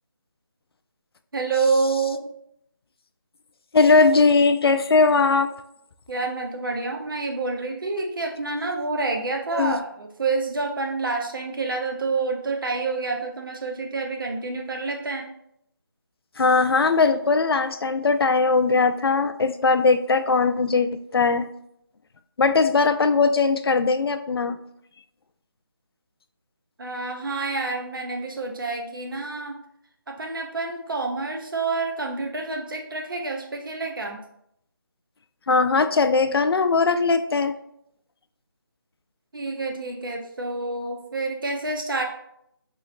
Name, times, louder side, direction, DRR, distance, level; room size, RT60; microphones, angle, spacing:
voice 1, 1.3-2.2 6.1-15.3 26.8-29.6 30.1-34.2 39.3-42.0, right 3 dB, 65° right, 2 dB, 0.7 m, -28 dB
voice 2, 3.7-5.5 9.5-9.8 16.4-21.5 22.4-24.6 35.5-37.5, left 4 dB, 85° left, 10 dB, 0.4 m, -20 dB
4.1 x 3.0 x 2.4 m, 0.74 s
figure-of-eight pair, 175°, 12 cm